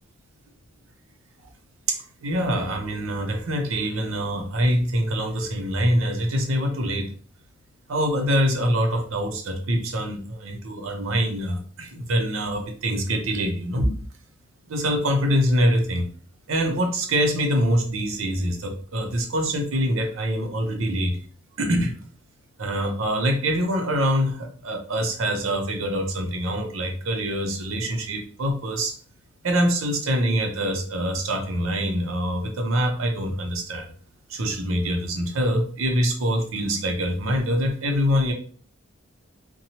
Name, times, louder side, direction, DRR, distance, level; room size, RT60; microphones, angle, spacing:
voice 1, 1.9-7.1 7.9-13.9 14.7-16.1 16.5-21.1 21.6-21.9 22.6-28.9 29.4-33.9 34.3-38.3, equal, 85° right, 4 dB, 0.6 m, -24 dB
2.8 x 2.2 x 2.8 m, 0.43 s
head